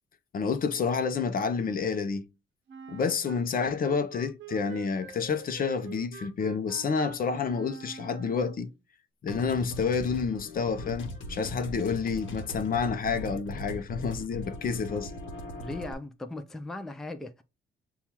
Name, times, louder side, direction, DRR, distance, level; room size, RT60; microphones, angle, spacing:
voice 1, 0.3-2.2 2.9-8.7 9.2-15.1, left 5 dB, 45° left, 0.6 m, -29 dB
Wind instrument woodwind instrument, 2.7-8.7, right 6 dB, 75° right, 0.7 m, -46 dB
sound 1, 9.3-15.9, left 1 dB, 75° left, 0.9 m, -39 dB
voice 2, 15.6-17.4, left 2 dB, ahead, 0.4 m, -38 dB
6.9 x 2.4 x 2.9 m
cardioid pair, 90°, 20 cm